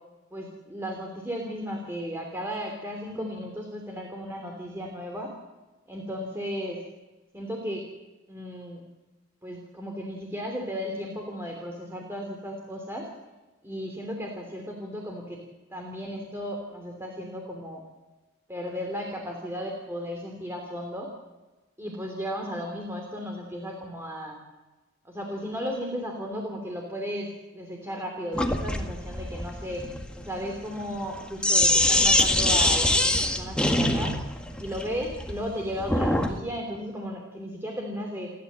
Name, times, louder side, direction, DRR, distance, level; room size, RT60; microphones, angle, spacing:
voice 1, 0.3-5.3 5.9-6.8 7.3-7.8 8.3-8.8 9.4-13.1 13.6-15.4 15.7-17.8 18.5-21.1 21.8-24.4 25.0-29.9 30.1-34.1 34.6-38.3, equal, 15° right, 1 dB, 3.1 m, -35 dB
Sink (filling or washing), 28.3-36.4, left 1 dB, 5° left, 1.7 m, -24 dB
30.0 x 12.5 x 7.6 m, 1.1 s
head